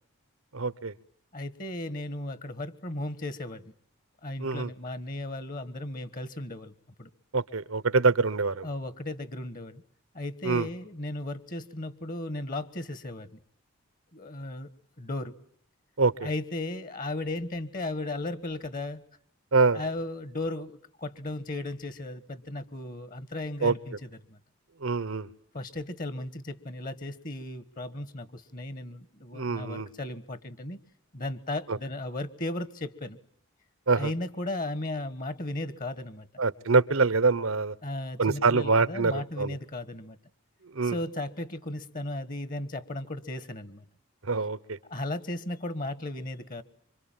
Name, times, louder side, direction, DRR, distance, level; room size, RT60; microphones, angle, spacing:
voice 1, 0.5-0.9 4.4-4.7 7.3-8.7 10.4-10.7 16.0-16.3 19.5-19.8 23.6-23.7 24.8-25.3 29.3-29.9 31.7-31.8 33.9-34.1 36.4-37.7 38.2-39.6 40.7-41.0 44.3-44.8, right 4 dB, 75° right, 18 dB, 1.1 m, -25 dB
voice 2, 1.3-3.6 4.2-6.7 7.0-7.1 8.6-9.8 10.1-13.3 14.1-14.7 15.0-15.3 16.2-19.0 19.7-23.9 24.3-24.4 25.5-30.8 31.1-33.2 34.0-36.3 37.8-40.2 40.8-43.8 44.9-46.6, left 2 dB, 40° left, 15 dB, 1.4 m, -35 dB
26.5 x 25.0 x 9.0 m, 0.67 s
head